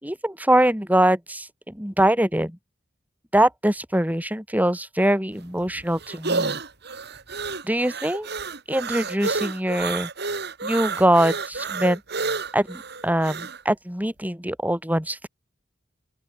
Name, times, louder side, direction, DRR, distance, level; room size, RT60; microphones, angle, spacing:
voice 1, 0.0-2.6 3.3-6.6 7.6-8.3 8.7-10.1 10.6-12.0 12.5-15.3, right 1 dB, 10° right, 5.4 m, -23 dB
sound 1, 5.3-13.6, right 4 dB, 60° right, 4.8 m, -30 dB
open air
head